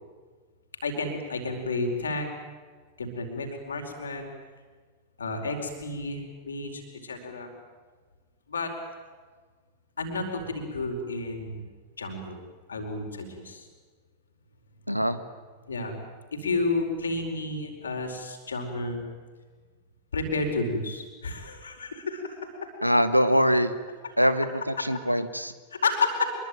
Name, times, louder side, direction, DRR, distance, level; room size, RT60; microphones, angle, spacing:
voice 1, 0.8-2.3 3.0-4.3 5.2-7.5 8.5-8.7 10.0-11.6 12.0-12.4 12.7-13.7 15.7-16.0 16.3-19.0 20.1-22.7 24.8-24.9 25.7-26.3, left 3 dB, 70° left, 4 dB, 4.7 m, -31 dB
voice 2, 14.9-15.2 22.8-23.7 24.2-25.5, equal, 90° right, 12 dB, 1.5 m, -23 dB
25.0 x 23.0 x 9.2 m, 1.4 s
figure-of-eight pair, 90°, 0 cm